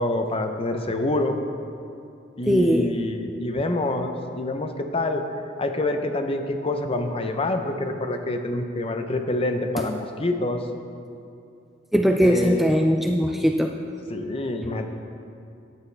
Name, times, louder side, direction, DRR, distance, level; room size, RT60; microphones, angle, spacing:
voice 1, 0.0-1.4 2.4-5.2 5.6-10.7 12.2-12.7 14.1-14.9, left 2 dB, 30° left, 6 dB, 0.6 m, -26 dB
voice 2, 2.5-3.0 11.9-13.7, equal, ahead, 3 dB, 0.3 m, -20 dB
12.5 x 9.4 x 3.4 m, 2.6 s
head